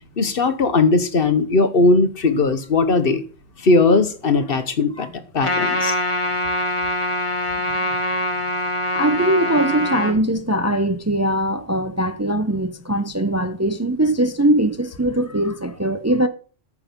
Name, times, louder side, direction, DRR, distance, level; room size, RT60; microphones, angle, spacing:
voice 1, 0.2-3.2 3.6-5.1 5.3-5.9, left 3 dB, 60° left, 1.2 m, -18 dB
Trumpet, 5.4-10.1, left 1 dB, 30° left, 1.4 m, -23 dB
voice 2, 8.9-16.3, right 1 dB, 20° right, 0.5 m, -21 dB
13.5 x 6.0 x 5.3 m
omnidirectional pair, 1.1 m